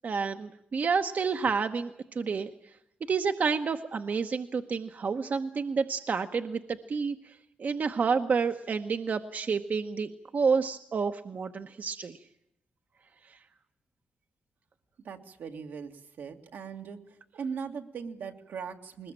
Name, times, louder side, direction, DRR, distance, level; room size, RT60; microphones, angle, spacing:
voice 1, 0.0-2.5 3.1-12.2 13.3-13.4, right 5 dB, 55° right, 7 dB, 1.0 m, -29 dB
voice 2, 15.0-17.0 17.3-19.1, right 6 dB, 85° right, 4 dB, 2.0 m, -39 dB
21.0 x 20.0 x 8.9 m, 0.78 s
cardioid pair, 80°, 3 cm